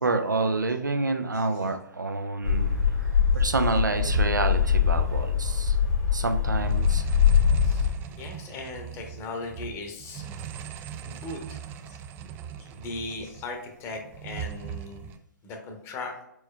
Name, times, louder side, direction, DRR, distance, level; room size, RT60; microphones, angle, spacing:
voice 1, 0.0-2.8 3.3-5.8 6.1-7.0, right 3 dB, 85° right, 7 dB, 0.6 m, -28 dB
sound 1, 2.4-7.9, left 7 dB, 75° left, 1.4 m, -23 dB
sound 2, 4.0-5.6 5.8-6.0 6.3-13.5 13.8-15.2, right 8 dB, 20° right, 0.3 m, -39 dB
voice 2, 7.6-10.3 11.0-12.0 12.6-15.1 15.4-16.1, left 3 dB, 25° left, 3 dB, 0.8 m, -38 dB
4.6 x 4.3 x 2.2 m, 0.83 s
figure-of-eight pair, 120°, 10 cm